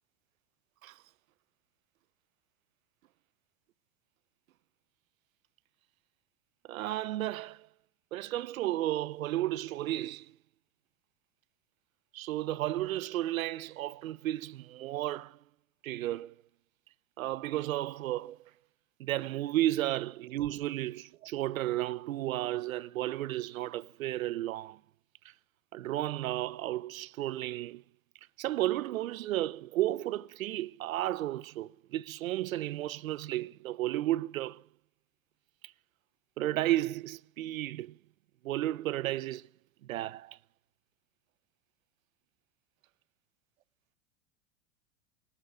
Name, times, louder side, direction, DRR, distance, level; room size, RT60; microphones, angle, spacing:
voice 1, 6.7-7.7 8.1-10.3 12.1-15.4 15.8-16.3 17.2-18.4 19.0-24.8 25.7-27.8 28.4-34.6 36.4-38.0 38.4-39.4 39.8-40.4, right 14 dB, 80° right, 0.8 m, -33 dB
26.0 x 8.8 x 5.1 m
hypercardioid pair, 115°, 40 cm